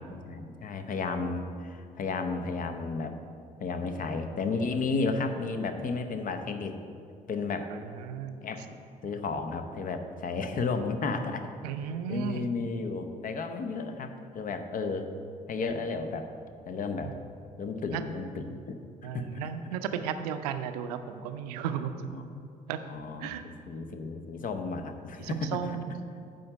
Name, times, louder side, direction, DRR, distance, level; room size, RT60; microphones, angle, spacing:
voice 1, 0.1-3.1 3.6-6.8 7.3-7.7 8.4-8.7 9.0-11.5 12.1-15.1 15.5-16.3 16.7-17.1 17.6-18.8 19.1-19.4 22.1-22.2 22.8-25.8, left 4 dB, 40° left, 7 dB, 0.7 m, -33 dB
voice 2, 8.0-8.4 11.6-12.4 17.9-18.0 19.0-21.9 22.7-22.8 23.2-23.5 25.2-25.9, right 8 dB, 70° right, 9 dB, 0.5 m, -34 dB
9.7 x 3.8 x 6.8 m, 2.4 s
figure-of-eight pair, 45°, 21 cm